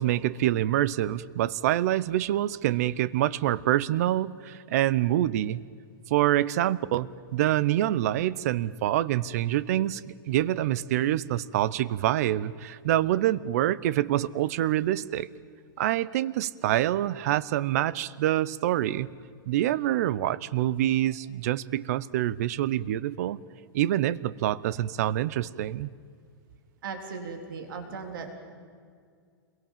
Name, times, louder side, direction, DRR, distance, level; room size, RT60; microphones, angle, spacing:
voice 1, 0.0-5.6 6.1-15.3 15.8-19.1 19.5-23.4 23.7-25.9, right 13 dB, 40° right, 18 dB, 0.7 m, -26 dB
voice 2, 26.8-28.3, right 5 dB, 60° right, 4 dB, 3.8 m, -37 dB
29.5 x 22.5 x 7.4 m, 2.1 s
supercardioid pair, 175°, 12 cm